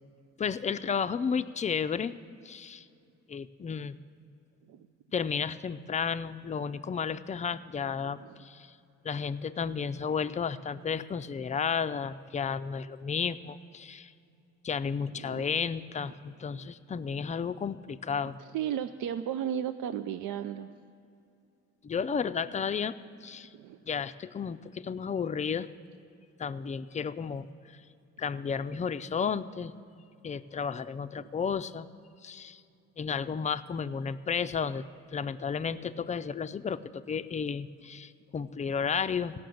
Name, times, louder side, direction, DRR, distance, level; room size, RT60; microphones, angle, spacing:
voice 1, 0.4-2.1 2.4-2.9 3.3-4.0 5.1-8.7 9.0-14.1 14.6-18.4 21.8-22.9 23.2-23.5 23.9-25.7 26.4-27.5 28.2-29.7 30.2-31.9 32.2-32.6 33.0-34.8 35.1-39.3, left 6 dB, 25° left, 13 dB, 0.4 m, -32 dB
voice 2, 15.1-15.6 16.5-16.7 18.4-20.8 23.5-23.8 31.2-31.3, right 9 dB, 80° right, 10 dB, 0.4 m, -35 dB
15.5 x 5.9 x 7.7 m, 2.6 s
cardioid pair, 90°, 30 cm